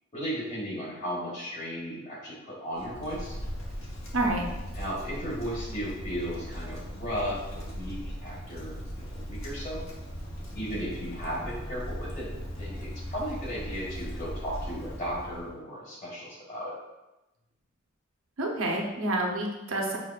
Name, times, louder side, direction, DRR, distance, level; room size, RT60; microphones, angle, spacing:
voice 1, 0.1-3.3 4.7-9.8 10.5-12.3 12.6-16.7, equal, 40° left, -5 dB, 1.5 m, -35 dB
Wind, 2.7-15.5, equal, 80° left, 1.0 m, -38 dB
voice 2, 18.4-20.0, right 1 dB, 75° right, 0 dB, 0.7 m, -28 dB
6.2 x 2.6 x 2.4 m, 1.0 s
head